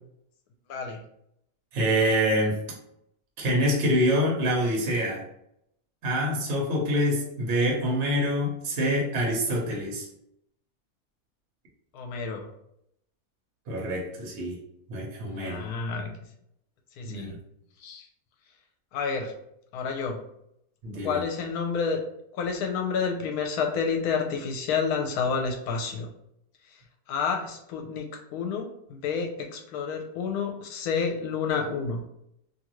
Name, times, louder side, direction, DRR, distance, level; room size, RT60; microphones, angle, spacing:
voice 1, 0.7-1.0 11.9-12.5 15.3-16.1 17.0-17.3 17.8-18.1 18.9-19.3 19.7-20.2 21.0-22.0 22.3-26.1 27.1-28.1 28.3-32.0, left 5 dB, 85° left, 3 dB, 1.1 m, -29 dB
voice 2, 1.7-2.6 3.4-5.2 6.0-10.1 13.7-14.6 14.9-15.7 17.0-17.4 20.8-21.2, equal, 55° right, -2 dB, 1.0 m, -26 dB
2.7 x 2.5 x 3.0 m, 0.76 s
omnidirectional pair, 1.6 m